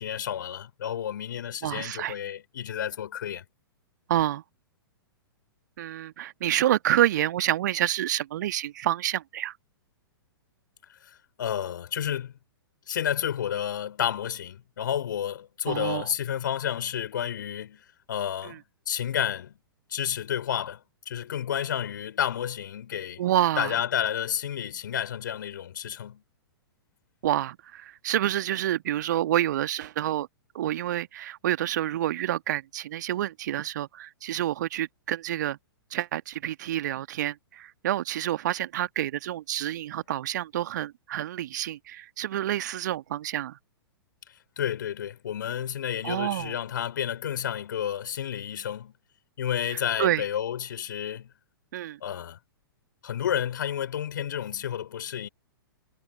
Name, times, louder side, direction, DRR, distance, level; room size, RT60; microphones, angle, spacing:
voice 1, 0.0-3.4 11.0-12.3 12.9-18.6 18.9-19.6 19.9-23.2 23.6-26.2 44.6-48.9 49.4-51.3 52.0-52.4 53.0-55.3, left 9 dB, 55° left, 4.8 m, -31 dB
voice 2, 1.6-2.2 4.1-4.4 5.8-9.5 15.7-16.1 18.4-18.6 23.2-23.8 27.2-30.3 30.5-35.6 35.9-43.6 46.0-46.5 49.7-50.2 51.7-52.0, right 12 dB, 50° right, 1.5 m, -28 dB
figure-of-eight pair, 110°, 13 cm